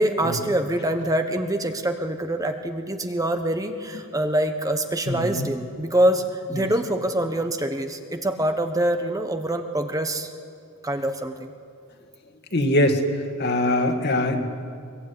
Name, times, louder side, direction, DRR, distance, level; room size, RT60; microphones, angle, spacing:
voice 1, 0.0-10.3 10.8-11.5, right 1 dB, 15° right, 7 dB, 1.1 m, -25 dB
voice 2, 5.1-5.5 6.6-6.7 12.5-13.0 13.4-14.4, left 1 dB, 50° left, 5 dB, 2.3 m, -22 dB
23.0 x 22.5 x 9.7 m, 2.4 s
head